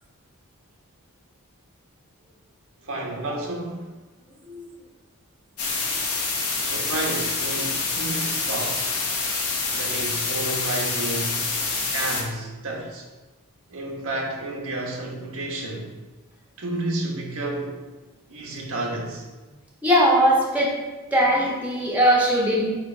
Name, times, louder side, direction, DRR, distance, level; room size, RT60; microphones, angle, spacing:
voice 1, 2.8-3.9 6.6-8.9 9.7-11.4 11.7-13.0 13.7-15.9 16.6-17.8 18.3-19.3, right 2 dB, 65° right, -1 dB, 1.2 m, -31 dB
sound 1, 5.6-12.2, left 3 dB, 85° left, 1.5 m, -27 dB
voice 2, 19.8-20.7 21.1-22.7, equal, 5° right, -3 dB, 1.3 m, -20 dB
8.9 x 3.4 x 4.4 m, 1.2 s
head